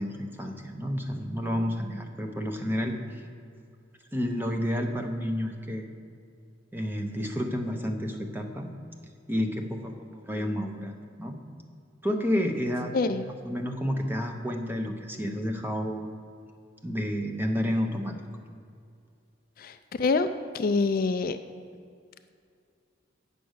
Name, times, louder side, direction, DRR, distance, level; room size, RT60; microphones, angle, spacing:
voice 1, 0.0-3.2 4.1-5.9 6.7-8.7 9.3-11.4 12.0-12.9 13.5-16.1 16.8-18.2, equal, 10° right, 4 dB, 0.8 m, -30 dB
voice 2, 19.6-20.3 20.5-21.4, left 4 dB, 45° left, 10 dB, 0.4 m, -26 dB
9.1 x 6.9 x 6.4 m, 2.3 s
head